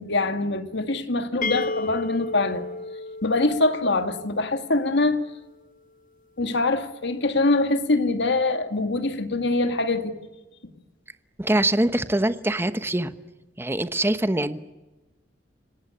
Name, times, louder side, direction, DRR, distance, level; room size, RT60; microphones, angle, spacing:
voice 1, 0.0-2.6 3.2-5.2 6.4-10.2, left 2 dB, 65° left, 2.1 m, -24 dB
sound 1, 1.4-5.1, left 3 dB, 45° left, 0.9 m, -33 dB
voice 2, 11.4-13.1 13.6-14.6, right 1 dB, 10° right, 1.0 m, -23 dB
27.0 x 18.5 x 9.8 m
head